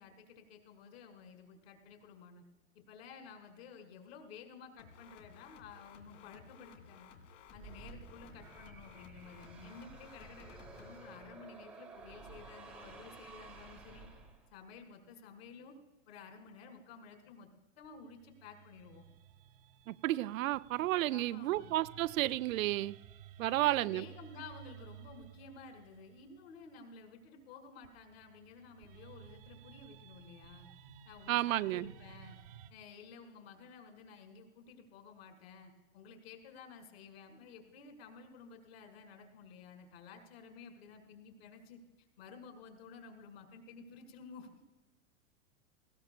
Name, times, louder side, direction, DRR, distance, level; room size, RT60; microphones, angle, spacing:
voice 1, 0.0-2.4 2.8-7.2 7.5-14.1 14.5-15.8 16.1-17.5 17.8-19.1 21.1-21.7 23.5-30.7 31.1-32.4 32.7-41.8 42.2-44.5, left 5 dB, 50° left, 2.1 m, -53 dB
sound 1, 4.8-11.0, left 6 dB, 65° left, 1.7 m, -57 dB
sound 2, 7.5-14.7, right 4 dB, 5° right, 0.9 m, -53 dB
sound 3, 17.8-27.0 27.8-32.7, right 9 dB, 45° right, 0.7 m, -56 dB
voice 2, 19.9-23.0 23.4-24.1 31.3-31.9, right 16 dB, 90° right, 0.5 m, -32 dB
19.0 x 17.0 x 2.2 m
supercardioid pair, 170°, 39 cm